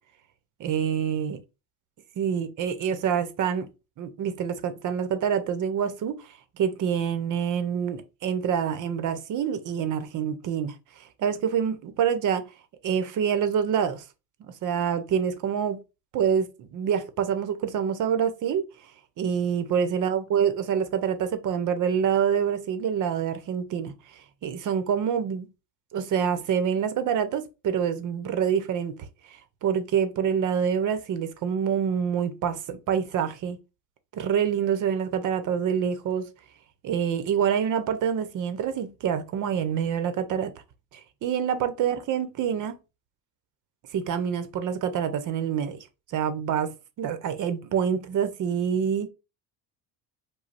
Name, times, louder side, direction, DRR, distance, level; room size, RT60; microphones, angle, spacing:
voice 1, 0.6-1.4 2.2-3.7 4.0-6.2 6.6-10.7 11.2-12.5 12.8-14.0 14.6-15.8 16.1-18.7 19.2-23.9 24.4-25.5 25.9-28.9 29.6-33.6 34.1-36.3 36.8-40.5 41.2-42.7 43.9-45.8 46.1-46.7 47.0-49.1, right 8 dB, 55° right, 0.9 m, -26 dB
5.1 x 2.3 x 4.2 m
cardioid pair, 120°, 38 cm